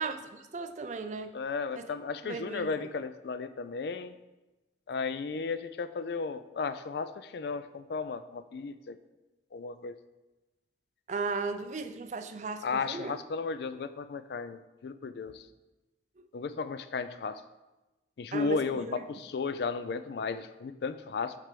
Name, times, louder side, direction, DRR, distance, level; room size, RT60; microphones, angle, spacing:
voice 1, 0.0-1.3 1.8-1.9 2.2-2.7 11.1-13.2 18.3-19.0, right 4 dB, 40° right, 9 dB, 0.4 m, -36 dB
voice 2, 1.3-4.2 4.9-9.0 9.5-10.0 12.6-15.4 16.3-17.4 18.2-21.3, left 4 dB, 60° left, 13 dB, 0.3 m, -34 dB
7.4 x 3.3 x 5.1 m, 1.1 s
head